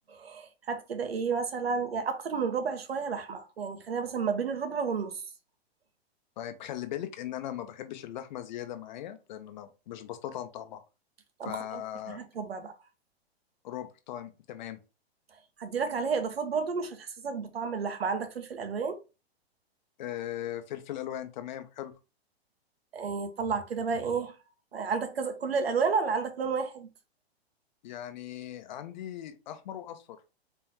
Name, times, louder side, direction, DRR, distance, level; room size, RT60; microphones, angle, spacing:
voice 1, 0.2-5.2 11.4-11.8 12.1-12.7 15.6-19.0 22.9-24.3 24.7-26.9, right 5 dB, 70° right, 1.2 m, -31 dB
voice 2, 6.4-10.8 11.4-12.2 13.6-14.8 20.0-21.9 27.8-30.2, left 11 dB, 45° left, 0.9 m, -39 dB
4.3 x 3.7 x 3.0 m
figure-of-eight pair, 110°, 32 cm